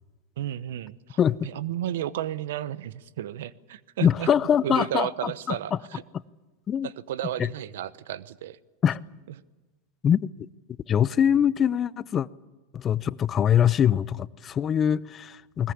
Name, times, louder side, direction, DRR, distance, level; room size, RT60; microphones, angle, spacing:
voice 1, 0.4-4.3 4.6-6.0 6.8-8.6, right 11 dB, 75° right, 0.9 m, -33 dB
voice 2, 4.0-5.6 6.7-6.9 7.4-7.5 8.8-9.0 10.0-10.3 10.9-12.3 12.7-15.7, left 9 dB, 30° left, 0.6 m, -23 dB
21.5 x 20.5 x 8.5 m
hypercardioid pair, 100°, 0 cm